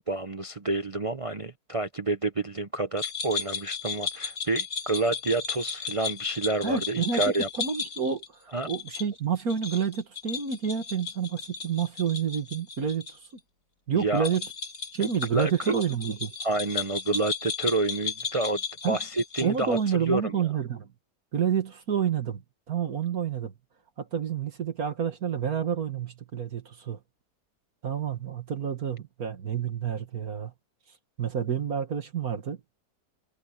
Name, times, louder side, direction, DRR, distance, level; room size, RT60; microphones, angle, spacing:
voice 1, 0.0-7.5 8.5-8.7 14.0-14.3 15.0-15.8 16.4-18.6 18.9-20.4, right 2 dB, 45° right, 0.4 m, -29 dB
sound 1, 3.0-13.1 13.4-13.5 14.1-19.9, left 5 dB, 60° left, 8.0 m, -35 dB
voice 2, 6.6-7.2 7.6-13.1 13.9-14.4 14.9-16.3 18.8-19.0 19.4-20.9 21.3-22.4 22.7-23.5 24.0-27.0 27.8-30.5 31.2-32.6, right 7 dB, 65° right, 2.1 m, -29 dB
omnidirectional pair, 1.6 m